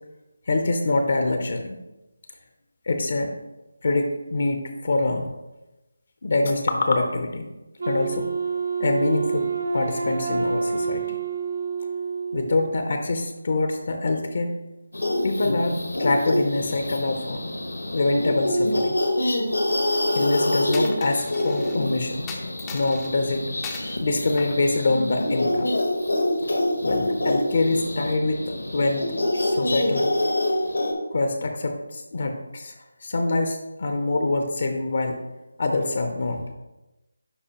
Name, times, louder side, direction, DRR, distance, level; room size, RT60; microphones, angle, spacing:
voice 1, 0.5-1.8 2.9-3.3 3.8-5.3 6.2-7.5 7.8-8.3 8.8-9.5 9.7-11.2 12.3-14.6 15.2-17.5 17.9-19.0 20.1-22.2 22.7-23.4 24.0-25.7 26.8-29.1 29.4-30.1 31.1-32.7 33.0-35.2 35.6-36.4, left 2 dB, 50° left, 5 dB, 0.7 m, -25 dB
Wind instrument woodwind instrument, 7.8-12.8, right 5 dB, 60° right, 0.9 m, -28 dB
sound 1, 14.9-30.9, left 1 dB, 80° left, 1.3 m, -26 dB
Coin (dropping), 20.7-21.8 22.3-23.1 23.6-24.0 24.4-25.5, left 5 dB, 15° left, 0.5 m, -39 dB
10.0 x 4.1 x 2.9 m, 1.0 s
figure-of-eight pair, 160°, 0 cm